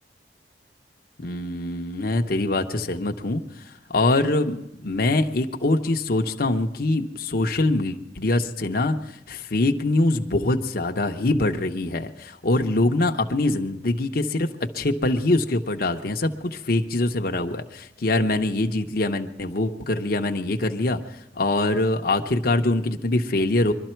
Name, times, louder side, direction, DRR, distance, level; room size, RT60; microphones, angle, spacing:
voice 1, 1.2-3.4 3.9-9.0 9.3-21.0 21.4-23.7, left 2 dB, 55° left, 5 dB, 0.9 m, -23 dB
22.5 x 12.5 x 4.5 m, 0.83 s
head